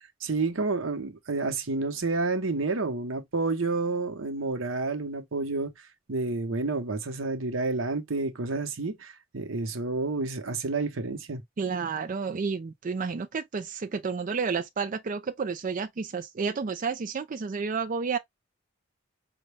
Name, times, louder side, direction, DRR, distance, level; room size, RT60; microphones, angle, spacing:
voice 1, 0.2-5.7 6.1-11.4, right 3 dB, 90° right, 0.9 m, -29 dB
voice 2, 11.6-18.2, right 5 dB, 40° right, 0.4 m, -31 dB
5.2 x 2.2 x 3.2 m
head